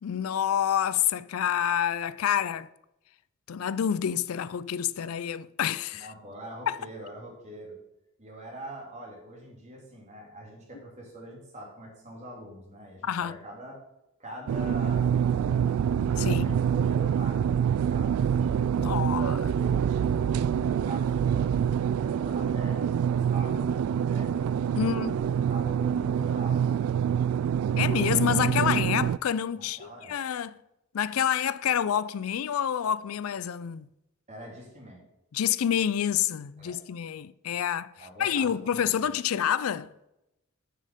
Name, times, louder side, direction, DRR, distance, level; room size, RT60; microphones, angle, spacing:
voice 1, 0.0-2.7 3.5-6.1 6.7-6.8 13.0-13.3 16.2-16.6 18.7-19.5 24.8-25.2 27.8-30.5 30.9-33.9 35.3-39.9, left 9 dB, 80° left, 0.4 m, -28 dB
voice 2, 5.9-7.8 8.2-13.8 14.2-15.9 16.2-18.3 19.0-20.1 20.5-24.4 24.8-26.8 29.6-30.2 34.3-35.0 36.6-36.8 38.0-39.2, right 1 dB, 30° right, 2.6 m, -44 dB
sound 1, 14.5-29.2, right 8 dB, 85° right, 0.3 m, -26 dB
7.6 x 6.4 x 5.2 m
head